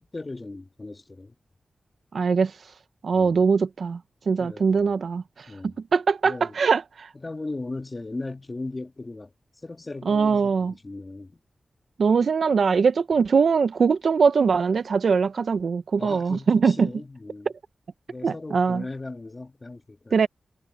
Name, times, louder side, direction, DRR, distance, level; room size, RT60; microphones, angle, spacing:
voice 1, 0.1-1.4 3.1-3.3 4.4-4.9 5.5-5.7 6.2-6.5 7.2-9.3 9.6-10.5 10.8-11.3 16.0-17.5 18.1-20.2, left 2 dB, 25° left, 1.9 m, -37 dB
voice 2, 2.1-2.7 3.0-4.0 4.3-5.5 5.9-7.1 10.1-10.7 12.0-16.9 18.2-18.8 20.1-20.3, right 5 dB, 70° right, 0.5 m, -22 dB
wide cardioid pair, 115°, 0 cm